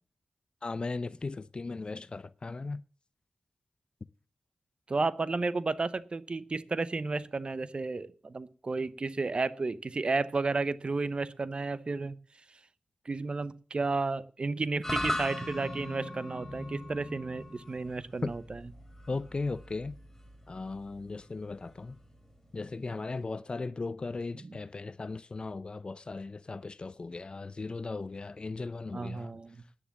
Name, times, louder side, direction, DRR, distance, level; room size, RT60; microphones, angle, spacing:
voice 1, 0.6-2.8 18.2-18.3 19.1-20.0 20.5-22.0 22.5-29.3, left 3 dB, 45° left, 0.5 m, -37 dB
voice 2, 4.9-12.1 13.1-18.6 24.4-24.6 28.9-29.6, right 3 dB, 50° right, 0.8 m, -32 dB
sound 1, 14.8-23.2, left 1 dB, 15° left, 3.4 m, -39 dB
10.0 x 10.0 x 7.2 m
cardioid pair, 60°, 2 cm